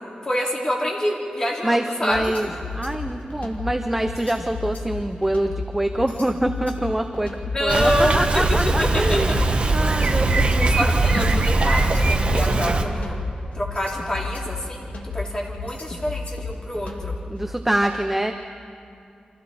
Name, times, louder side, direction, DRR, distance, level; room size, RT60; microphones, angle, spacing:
voice 1, 0.2-2.2 7.5-8.4 8.8-9.7 10.1-10.3 10.7-13.1 13.5-14.9 15.1-17.2, equal, 25° left, -2 dB, 3.1 m, -26 dB
voice 2, 1.6-2.5 2.8-7.3 7.6-9.4 9.7-10.9 17.3-18.3, right 1 dB, 10° right, 5 dB, 0.7 m, -25 dB
sound 1, 2.1-17.4, left 3 dB, 65° left, 2.1 m, -33 dB
Bicycle, 7.7-12.8, right 2 dB, 45° right, 1.3 m, -20 dB
28.5 x 25.0 x 4.3 m, 2.5 s
wide cardioid pair, 165°, 3 cm